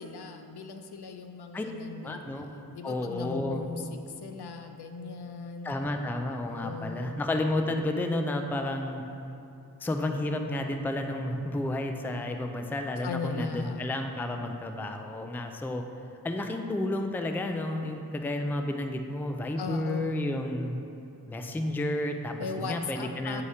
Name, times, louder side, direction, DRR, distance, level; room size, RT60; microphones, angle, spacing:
voice 1, 0.0-5.7 6.3-7.2 13.0-13.9 19.6-20.4 22.4-23.4, left 4 dB, 75° left, 6 dB, 0.5 m, -38 dB
voice 2, 2.0-2.5 2.8-3.7 5.6-9.0 9.8-15.9 16.2-20.8 21.3-22.4 22.6-23.4, left 1 dB, 5° left, 5 dB, 0.3 m, -31 dB
7.8 x 2.8 x 4.8 m, 2.7 s
wide cardioid pair, 55°, 40 cm